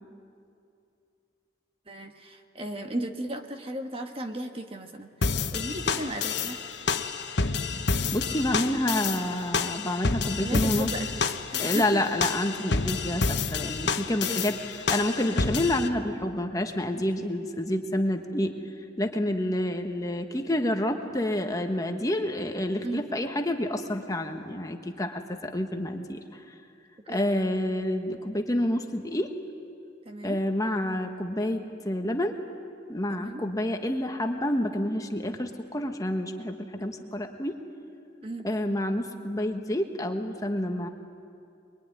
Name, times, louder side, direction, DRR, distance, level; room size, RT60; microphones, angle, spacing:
voice 1, 1.9-5.1 5.5-6.6 10.4-11.2 11.5-12.0 14.3-14.5 22.8-23.0 27.1-27.3 30.0-30.4 33.1-33.4 38.2-38.5, right 1 dB, 30° right, 5 dB, 1.4 m, -35 dB
sound 1, 5.2-15.9, left 4 dB, 75° left, 1.1 m, -29 dB
voice 2, 8.1-10.9 11.6-18.5 19.0-26.4 27.1-29.3 30.2-32.3 32.9-37.5 38.4-40.9, left 1 dB, 20° left, 4 dB, 1.3 m, -28 dB
23.5 x 23.0 x 9.9 m, 2.5 s
head